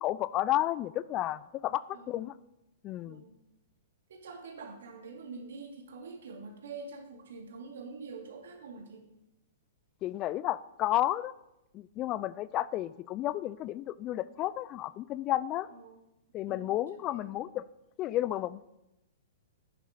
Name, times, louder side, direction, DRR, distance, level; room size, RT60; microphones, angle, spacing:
voice 1, 0.0-2.3 2.8-3.2 10.0-11.3 11.7-15.7 16.3-17.6 18.0-18.6, left 14 dB, 30° left, 18 dB, 0.4 m, -32 dB
voice 2, 1.9-2.3 3.1-3.4 4.1-9.0 15.7-16.0 16.5-16.8 17.1-17.5, right 4 dB, 65° right, 3 dB, 2.5 m, -46 dB
11.0 x 9.4 x 5.1 m, 0.91 s
figure-of-eight pair, 115°, 0 cm